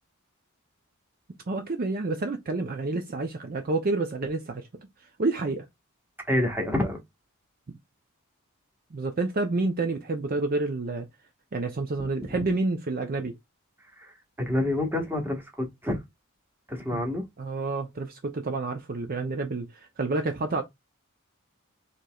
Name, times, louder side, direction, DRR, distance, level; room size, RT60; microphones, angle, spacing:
voice 1, 1.5-4.7 5.2-5.7 8.9-11.1 11.5-13.3 16.9-17.0 17.4-20.6, right 3 dB, 45° right, 0.6 m, -29 dB
voice 2, 6.3-7.0 14.0-14.1 14.4-16.0 16.7-17.2, left 1 dB, 10° right, 1.3 m, -27 dB
5.1 x 3.0 x 2.3 m
head